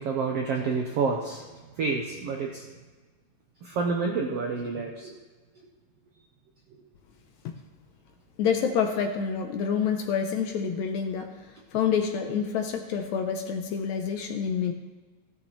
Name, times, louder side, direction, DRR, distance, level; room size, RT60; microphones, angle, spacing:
voice 1, 0.0-1.5 1.8-2.7 3.6-5.2, right 4 dB, 75° right, 1 dB, 1.4 m, -29 dB
voice 2, 8.4-11.3 11.7-14.7, left 7 dB, 75° left, 5 dB, 1.8 m, -27 dB
16.0 x 11.5 x 3.1 m, 1.3 s
omnidirectional pair, 3.8 m